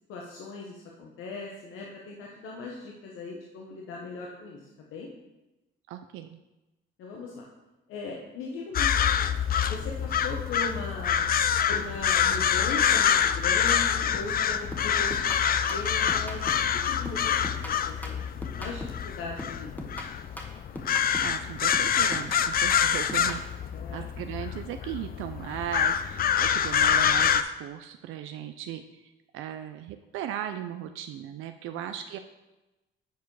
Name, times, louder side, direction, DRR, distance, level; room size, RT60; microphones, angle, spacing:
voice 1, 0.1-5.1 7.0-7.5 7.9-11.3 11.7-15.4 15.7-18.2 18.6-19.8 23.7-24.1 31.7-31.8, left 3 dB, 85° left, -1 dB, 0.9 m, -39 dB
voice 2, 5.9-6.4 21.2-23.4 23.9-32.2, right 11 dB, 90° right, 8 dB, 0.4 m, -37 dB
sound 1, 8.7-27.4, left 8 dB, 50° left, 0.4 m, -26 dB
sound 2, 14.1-14.4 14.7-16.7 17.0-19.1 19.4-21.4 21.7-23.5, left 1 dB, 10° left, 1.3 m, -40 dB
8.2 x 4.6 x 4.7 m, 1.0 s
cardioid pair, 90°, 20 cm